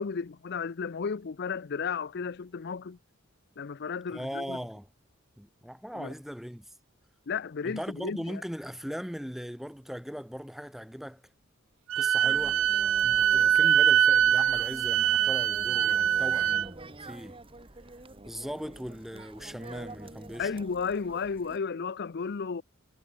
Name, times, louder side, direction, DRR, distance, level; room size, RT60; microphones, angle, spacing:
voice 1, 0.0-3.0 3.6-4.6 5.9-6.1 7.3-8.4 20.4-22.6, left 5 dB, 50° left, 0.5 m, -33 dB
voice 2, 4.1-4.9 5.4-6.7 7.6-11.2 12.0-12.6 13.0-17.4 18.3-20.5, equal, ahead, 1.3 m, -39 dB
Wind instrument woodwind instrument, 11.9-16.7, right 9 dB, 65° right, 0.5 m, -23 dB
sound 1, 12.2-21.6, right 2 dB, 25° right, 2.1 m, -46 dB
head